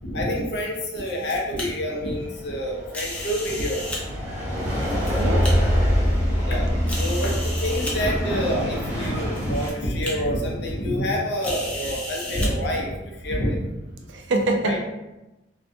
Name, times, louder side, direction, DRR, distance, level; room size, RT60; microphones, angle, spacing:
voice 1, 0.0-3.9 4.2-4.7 6.4-13.7 14.6-14.8, equal, 60° left, -1 dB, 0.5 m, -27 dB
sound 1, 0.7-1.7 2.9-4.0 4.7-5.5 6.2-6.3 6.9-7.9 8.9-9.0 9.3-9.7 10.0-10.1 11.4-12.5, left 1 dB, 5° left, 0.4 m, -34 dB
sound 2, 2.1-9.7, equal, 40° right, 1.0 m, -24 dB
voice 2, 5.2-5.5 14.1-14.8, right 2 dB, 70° right, 2 dB, 0.4 m, -24 dB
2.6 x 2.2 x 2.5 m, 1.0 s
head